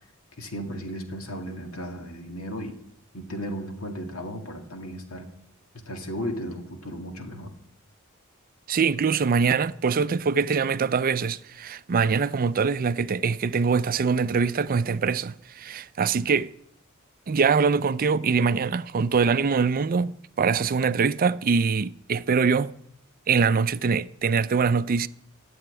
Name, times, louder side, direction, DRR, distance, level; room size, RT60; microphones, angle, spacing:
voice 1, 0.4-2.8 3.1-5.3 5.9-7.5, equal, 75° left, 2.3 m, -35 dB
voice 2, 8.7-16.5 17.3-22.7 23.3-25.1, right 5 dB, 40° right, 0.4 m, -23 dB
13.0 x 7.9 x 9.2 m
head